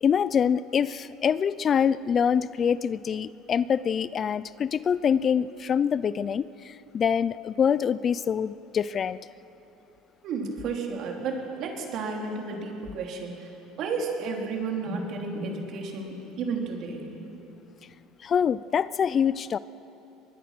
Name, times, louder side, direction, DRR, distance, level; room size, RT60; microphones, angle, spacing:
voice 1, 0.0-9.2 18.2-19.6, left 7 dB, 40° left, 18 dB, 0.5 m, -25 dB
voice 2, 10.2-13.5 13.8-17.1, right 4 dB, 60° right, 1 dB, 3.9 m, -32 dB
22.5 x 21.0 x 6.1 m, 2.9 s
supercardioid pair, 95°, 0 cm